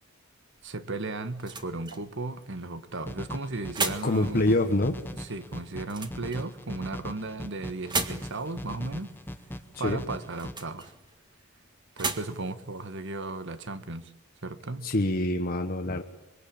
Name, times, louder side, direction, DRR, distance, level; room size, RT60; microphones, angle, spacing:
sound 1, 0.6-14.1, right 4 dB, 20° right, 1.8 m, -39 dB
voice 1, 0.6-4.4 5.2-9.1 9.8-10.9 12.0-14.1 14.4-14.9, right 2 dB, 60° right, 1.5 m, -35 dB
sound 2, 3.1-10.5, equal, 10° left, 1.1 m, -40 dB
voice 2, 4.0-5.0 9.8-10.0 14.8-16.0, left 1 dB, 45° left, 1.4 m, -25 dB
25.0 x 23.5 x 8.8 m
head